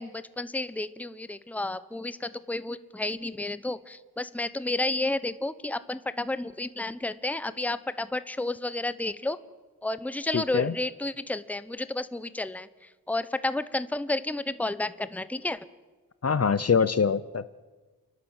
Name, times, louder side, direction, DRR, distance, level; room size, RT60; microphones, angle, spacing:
voice 1, 0.0-9.4 9.8-12.7 13.1-15.6, left 2 dB, 5° left, 14 dB, 0.8 m, -31 dB
voice 2, 10.3-10.7 16.2-17.5, left 6 dB, 40° left, 16 dB, 0.7 m, -24 dB
29.5 x 11.5 x 8.8 m, 1.3 s
wide cardioid pair, 85°, 37 cm